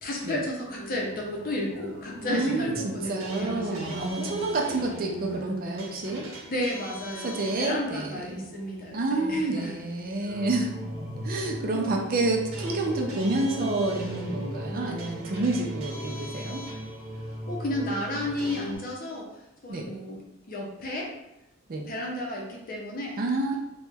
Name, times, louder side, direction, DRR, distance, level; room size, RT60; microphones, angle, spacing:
voice 1, 0.0-4.3 6.4-9.7 11.6-11.9 17.5-19.3 19.6-20.2 20.5-21.1 21.9-23.2, left 1 dB, 45° left, -1 dB, 0.7 m, -32 dB
sound 1, 0.6-18.8, equal, 85° right, 0.7 m, -38 dB
voice 2, 2.3-6.3 7.2-8.4 8.9-10.7 11.2-16.6 19.7-19.9 21.7-21.9 23.2-23.6, right 2 dB, 45° right, 1 dB, 0.5 m, -29 dB
3.0 x 2.2 x 3.3 m, 0.90 s
head